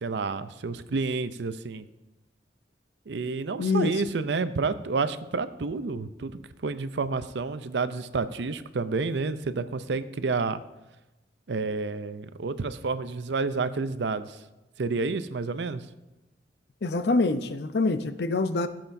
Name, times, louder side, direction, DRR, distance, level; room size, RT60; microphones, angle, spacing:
voice 1, 0.0-1.8 3.1-6.3 6.6-10.6 11.5-14.4 14.8-15.8, right 4 dB, 75° right, 13 dB, 0.5 m, -29 dB
voice 2, 3.6-3.9 16.8-18.7, left 3 dB, 65° left, 10 dB, 0.6 m, -25 dB
15.5 x 7.6 x 2.7 m, 1.0 s
head